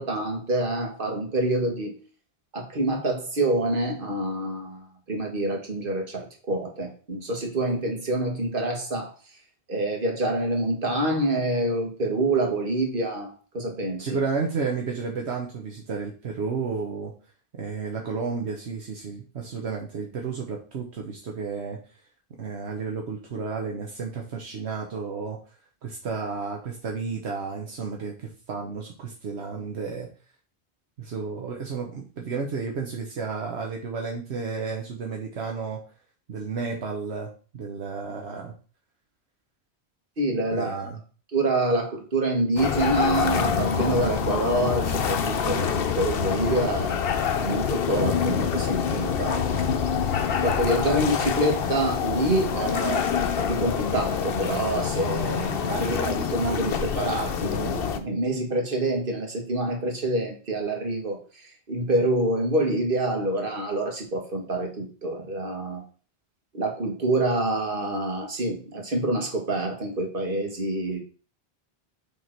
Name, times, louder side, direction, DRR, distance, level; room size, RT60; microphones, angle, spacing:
voice 1, 0.0-1.9 2.5-9.1 9.7-14.1 40.2-40.9 41.3-47.0 47.4-49.8 50.4-53.1 53.4-65.8 66.5-71.0, right 2 dB, 55° right, 2 dB, 1.7 m, -27 dB
voice 2, 14.0-17.1 17.5-21.8 22.4-25.4 25.8-30.1 31.0-35.8 36.3-38.5 40.5-41.0, right 5 dB, 75° right, 0 dB, 1.2 m, -32 dB
sound 1, 42.6-58.0, left 7 dB, 65° left, 0.9 m, -26 dB
6.5 x 3.7 x 4.4 m, 0.37 s
omnidirectional pair, 1.1 m